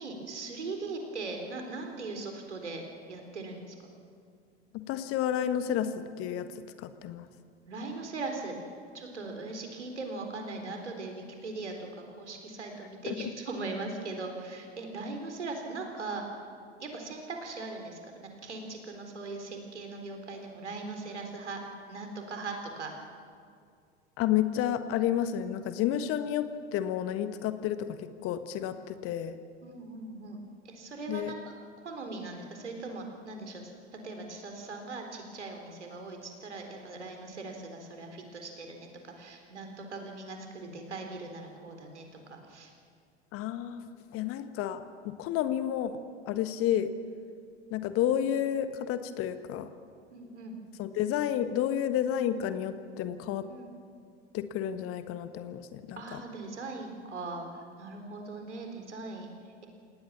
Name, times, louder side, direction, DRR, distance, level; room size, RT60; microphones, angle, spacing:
voice 1, 0.0-2.8 3.1-3.9 7.7-16.2 16.8-21.6 21.9-22.9 29.6-30.4 30.6-31.5 31.8-33.7 34.0-42.7 50.1-50.6 53.5-53.6 55.9-59.3, right 3 dB, 80° right, 3 dB, 4.0 m, -40 dB
voice 2, 4.7-6.5 6.8-7.3 13.1-13.3 24.2-29.4 31.1-31.3 43.3-45.9 46.3-46.9 47.7-49.7 50.8-53.5 54.3-56.2, left 10 dB, 40° left, 10 dB, 1.5 m, -31 dB
28.0 x 18.5 x 7.3 m, 2.2 s
figure-of-eight pair, 85°, 34 cm